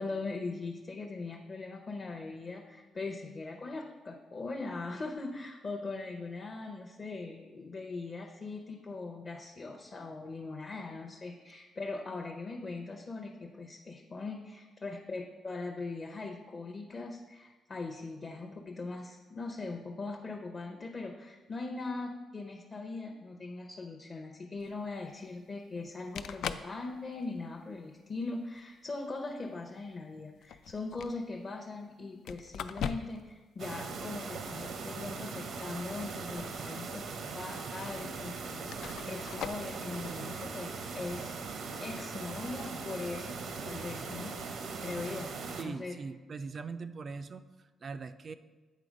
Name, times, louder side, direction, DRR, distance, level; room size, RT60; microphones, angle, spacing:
voice 1, 0.0-37.1 37.3-45.3 45.6-46.0, left 3 dB, 35° left, 1 dB, 0.7 m, -40 dB
sound 1, 24.6-24.7 25.9-26.0 26.2-26.7 27.2-27.6 28.6-28.7 30.3-31.2 32.3-33.3 33.6-33.7 36.0-36.7 37.1-37.2 38.0-38.1 38.7-39.7 42.3-42.5, left 8 dB, 80° left, 0.3 m, -40 dB
sound 2, 33.6-45.6, right 4 dB, 75° right, 0.7 m, -40 dB
voice 2, 45.6-47.4 47.8-48.3, right 4 dB, 40° right, 11 dB, 0.3 m, -41 dB
8.3 x 3.9 x 5.0 m, 1.3 s
cardioid pair, 110°, 0 cm